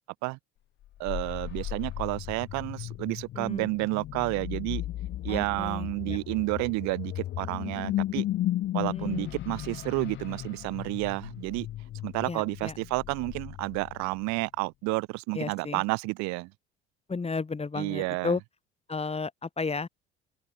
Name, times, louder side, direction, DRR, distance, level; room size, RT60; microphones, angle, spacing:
sound 1, 0.8-14.3, left 13 dB, 35° left, 0.7 m, -35 dB
voice 1, 1.0-4.8 5.2-8.2 8.7-11.7 12.0-16.5 17.7-18.4, right 25 dB, 55° right, 1.3 m, -30 dB
voice 2, 3.4-3.7 5.3-6.2 8.9-9.3 12.2-12.7 15.3-15.8 17.1-18.4 18.9-19.9, left 4 dB, 20° left, 2.7 m, -33 dB
figure-of-eight pair, 60°, 33 cm